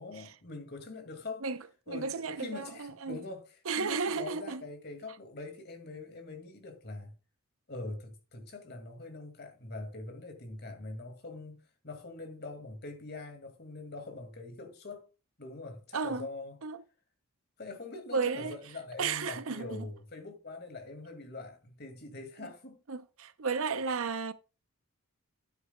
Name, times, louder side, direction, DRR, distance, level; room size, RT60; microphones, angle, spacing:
voice 1, 0.0-1.5 1.9-7.2 7.7-15.1 15.4-16.6 17.6-22.8, left 3 dB, 45° left, 2.2 m, -43 dB
voice 2, 1.9-3.2 3.7-4.6 15.9-16.3 16.6-16.8 18.1-18.6 19.0-19.9 22.9-24.3, right 5 dB, 70° right, 0.7 m, -33 dB
12.0 x 9.4 x 2.3 m
head